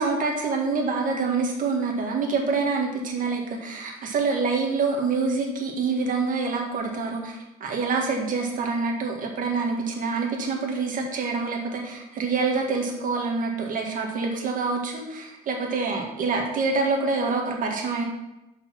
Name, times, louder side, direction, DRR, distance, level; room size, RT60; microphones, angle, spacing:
voice 1, 0.0-18.0, right 4 dB, 55° right, 1 dB, 1.8 m, -26 dB
6.4 x 5.3 x 5.9 m, 0.94 s
cardioid pair, 110°, 17 cm